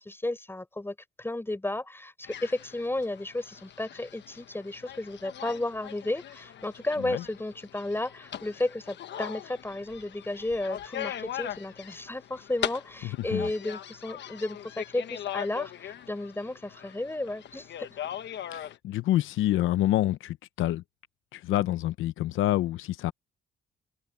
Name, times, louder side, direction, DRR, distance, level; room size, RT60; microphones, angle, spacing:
voice 1, 0.0-17.7, left 2 dB, 10° left, 4.4 m, -33 dB
sound 1, 2.2-18.8, left 10 dB, 65° left, 1.2 m, -40 dB
voice 2, 13.0-13.5 18.5-20.8 21.3-23.1, left 14 dB, 85° left, 0.8 m, -27 dB
cardioid pair, 90°, 20 cm